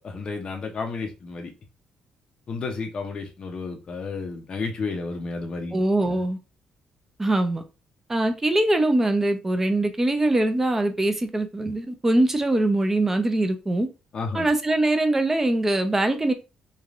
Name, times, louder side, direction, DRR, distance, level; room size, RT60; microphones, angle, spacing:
voice 1, 0.0-1.5 2.5-6.2 14.1-14.5, left 4 dB, 45° left, 0.6 m, -32 dB
voice 2, 5.7-6.4 7.2-7.6 8.1-13.9 14.3-16.3, right 1 dB, 15° right, 0.5 m, -22 dB
3.2 x 2.3 x 2.4 m
cardioid pair, 100°, 2 cm